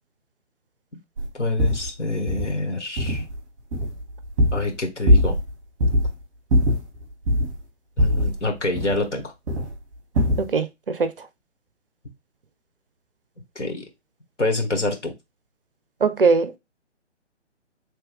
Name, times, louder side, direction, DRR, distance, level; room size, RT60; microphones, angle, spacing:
sound 1, 1.2-1.3 1.6-1.9 2.3-2.5 3.0-3.4 3.7-4.8 5.0-5.5 5.8-6.1 6.5-7.6 8.0-9.2 9.5-9.8 10.1-10.5, left 1 dB, 25° right, 1.4 m, -21 dB
voice 1, 1.3-3.2 4.5-5.4 8.0-9.3 13.5-13.8 14.4-15.1, left 2 dB, 75° left, 1.4 m, -26 dB
voice 2, 10.4-11.1 16.0-16.6, right 4 dB, 50° right, 0.5 m, -21 dB
3.3 x 2.9 x 3.3 m
figure-of-eight pair, 140°, 37 cm